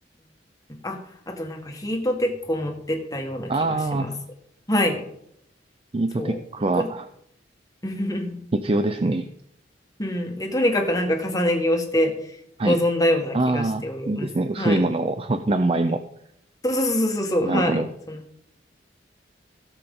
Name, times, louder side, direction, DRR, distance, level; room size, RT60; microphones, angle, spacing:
voice 1, 1.3-4.1 4.7-5.0 6.2-6.4 6.8-6.9 7.8-8.4 10.0-12.4 12.6-14.3 14.6-14.8 16.6-18.2, left 1 dB, 20° left, 2 dB, 1.6 m, -25 dB
voice 2, 3.5-4.1 5.9-7.1 8.5-9.3 12.6-12.8 13.3-16.0 17.4-17.9, right 2 dB, 30° right, 9 dB, 0.5 m, -24 dB
17.0 x 6.8 x 3.8 m, 0.74 s
head